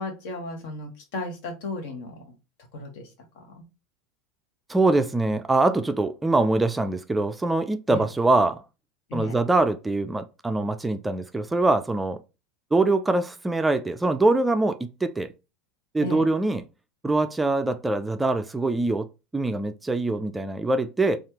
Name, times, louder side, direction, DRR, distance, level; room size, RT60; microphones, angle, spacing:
voice 1, 0.0-2.3 2.7-3.6 7.9-8.1 9.1-9.4 16.0-16.3, left 2 dB, 65° left, 1.1 m, -35 dB
voice 2, 4.7-8.6 9.1-12.2 12.7-15.3 15.9-16.6 17.0-19.1 19.3-21.2, right 2 dB, 10° right, 0.3 m, -23 dB
3.2 x 2.4 x 2.9 m
hypercardioid pair, 90°, 0 cm